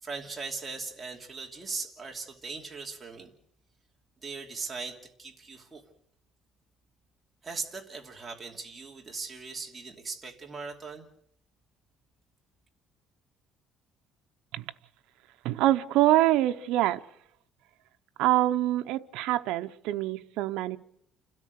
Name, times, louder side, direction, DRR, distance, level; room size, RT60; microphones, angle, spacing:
voice 1, 0.0-3.3 4.2-5.8 7.4-11.1, right 4 dB, 20° right, 2.9 m, -39 dB
voice 2, 15.4-17.0 18.2-20.8, right 15 dB, 85° right, 0.9 m, -25 dB
30.0 x 13.5 x 6.6 m
cardioid pair, 140°, 0 cm